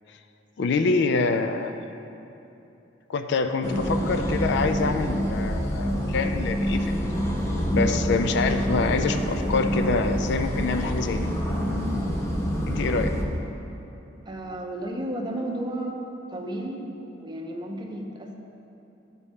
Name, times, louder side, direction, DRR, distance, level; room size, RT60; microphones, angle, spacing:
voice 1, 0.6-1.7 3.1-7.0 7.7-11.3 12.7-13.1, left 4 dB, 65° left, 8 dB, 0.4 m, -26 dB
sound 1, 3.6-13.2, equal, 15° left, 0.8 m, -26 dB
voice 2, 14.3-16.0 16.3-18.4, right 1 dB, 25° right, 0 dB, 0.6 m, -33 dB
12.0 x 4.1 x 3.6 m, 2.8 s
head